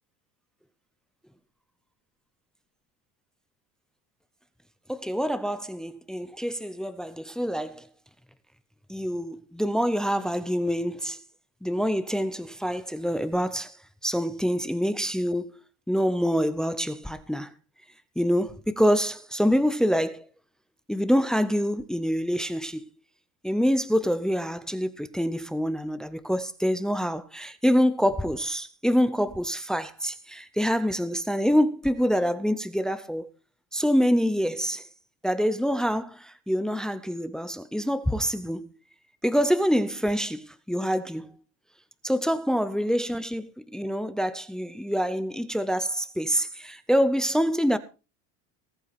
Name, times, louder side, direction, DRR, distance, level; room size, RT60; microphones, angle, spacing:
voice 1, 4.9-7.9 8.9-11.2 11.6-13.8 14.0-17.5 18.2-20.3 20.9-22.8 23.4-33.3 33.7-34.8 35.2-38.7 39.2-41.3 42.0-47.8, equal, ahead, 0.6 m, -26 dB
19.5 x 8.4 x 4.2 m
cardioid pair, 165°, 34 cm